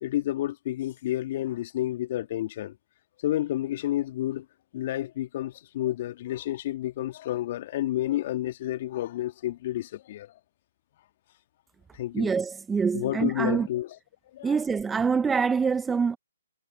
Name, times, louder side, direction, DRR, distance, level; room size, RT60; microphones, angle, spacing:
voice 1, 0.0-2.8 3.2-4.5 4.7-10.3 11.9-12.3 12.9-14.0 14.3-14.6, left 14 dB, 40° left, 1.7 m, -30 dB
voice 2, 12.1-13.7 14.4-16.2, right 5 dB, 10° right, 0.6 m, -25 dB
figure-of-eight pair, 135°, 0 cm